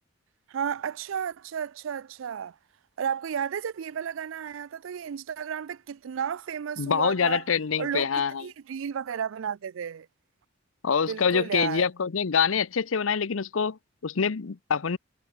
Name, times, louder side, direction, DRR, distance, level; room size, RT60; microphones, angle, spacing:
voice 1, 0.5-2.5 3.0-7.4 7.8-8.1 8.4-10.1 11.1-11.9, right 7 dB, 80° right, 0.4 m, -32 dB
voice 2, 6.8-8.4 10.8-15.0, left 6 dB, 85° left, 0.7 m, -25 dB
head